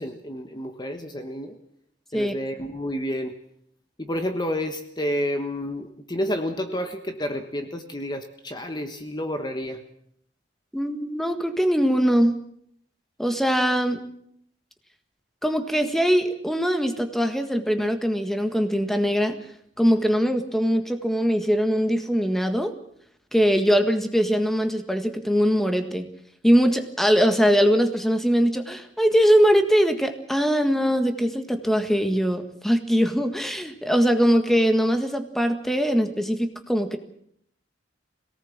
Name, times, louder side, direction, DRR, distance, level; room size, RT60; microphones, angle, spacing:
voice 1, 0.0-1.6 2.1-3.3 4.0-9.8, equal, 25° left, 6 dB, 1.3 m, -30 dB
voice 2, 10.7-12.4 13.2-14.0 15.4-19.4 19.8-22.7 23.3-26.1 26.4-37.0, equal, ahead, 6 dB, 1.7 m, -21 dB
22.0 x 18.5 x 7.4 m, 0.70 s
head